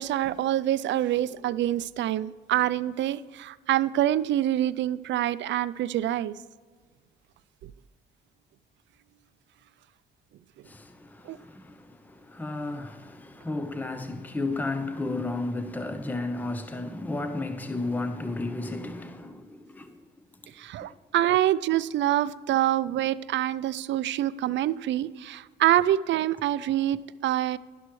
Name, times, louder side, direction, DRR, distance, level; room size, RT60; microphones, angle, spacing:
voice 1, 0.0-6.3 7.6-7.7 11.3-11.4 20.6-27.6, right 13 dB, 70° right, 0.4 m, -26 dB
voice 2, 10.6-20.1, left 2 dB, 10° left, 0.7 m, -33 dB
11.5 x 11.0 x 3.1 m
cardioid pair, 90°, 20 cm